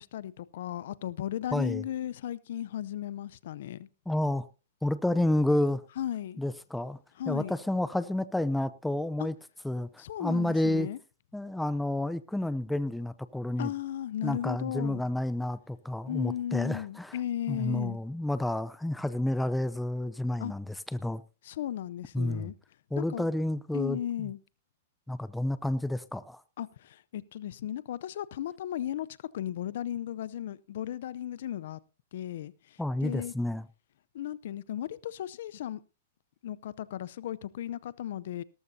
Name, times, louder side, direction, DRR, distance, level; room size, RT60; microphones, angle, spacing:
voice 1, 0.0-3.9 6.0-6.4 7.2-7.6 9.2-9.3 10.0-11.0 13.6-15.0 16.1-18.0 20.4-20.5 21.4-22.5 23.0-23.3 23.7-24.4 26.6-29.1 29.3-31.8 32.1-33.3 34.1-35.8 36.4-38.4, left 11 dB, 65° left, 0.6 m, -35 dB
voice 2, 1.5-1.8 4.1-4.5 4.8-5.8 6.4-7.0 7.3-9.3 9.6-10.9 11.3-13.7 14.2-17.2 17.5-21.2 22.1-22.5 22.9-24.3 25.1-26.4 32.8-33.7, left 1 dB, 5° left, 0.6 m, -30 dB
17.5 x 13.5 x 2.7 m
hypercardioid pair, 140°, 0 cm